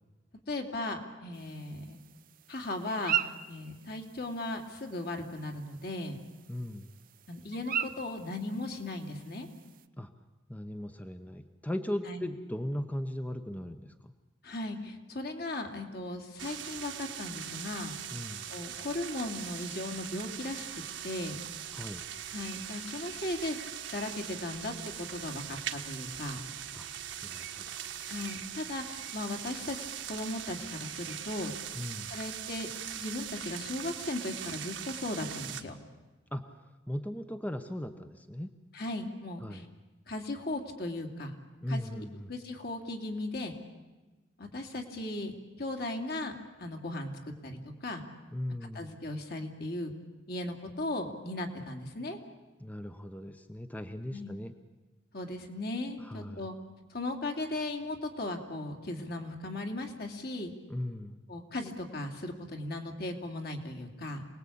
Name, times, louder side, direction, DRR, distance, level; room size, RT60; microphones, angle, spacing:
voice 1, 0.5-2.0 2.5-3.1 3.5-6.2 7.3-9.5 12.1-12.3 14.4-17.9 18.5-20.7 21.0-21.4 22.3-23.6 23.9-26.4 28.1-31.5 32.1-32.7 32.9-35.7 38.7-39.7 40.1-41.3 41.7-43.5 44.4-45.3 45.6-48.0 48.7-49.9 50.3-52.2 54.1-54.3 55.1-56.6 56.9-60.5 61.3-64.3, left 2 dB, 50° left, 4 dB, 2.7 m, -37 dB
sound 1, 1.3-9.9, right 9 dB, 45° right, 0.7 m, -40 dB
voice 2, 6.5-6.9 10.0-10.1 10.5-14.1 18.1-18.5 21.7-22.0 26.7-26.9 27.2-28.0 31.7-32.2 36.3-36.5 36.9-38.5 39.4-39.7 41.6-42.3 48.3-49.0 52.6-54.5 56.0-56.5 60.7-61.2, left 1 dB, 10° left, 8 dB, 0.9 m, -38 dB
sound 2, 16.4-35.6, right 10 dB, 65° right, 1.5 m, -41 dB
27.5 x 19.5 x 8.6 m, 1.2 s
head